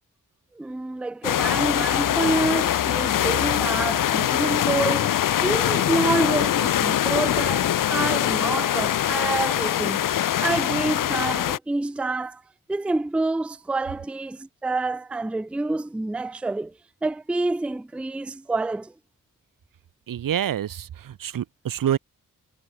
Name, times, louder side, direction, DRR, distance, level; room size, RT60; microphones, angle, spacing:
voice 1, 0.5-12.4 12.7-16.7 17.0-18.9, right 2 dB, 5° right, 0.4 m, -27 dB
sound 1, 1.2-11.6, left 11 dB, 75° left, 0.8 m, -23 dB
voice 2, 20.1-22.0, right 10 dB, 85° right, 1.7 m, -27 dB
cardioid pair, 90°, 33 cm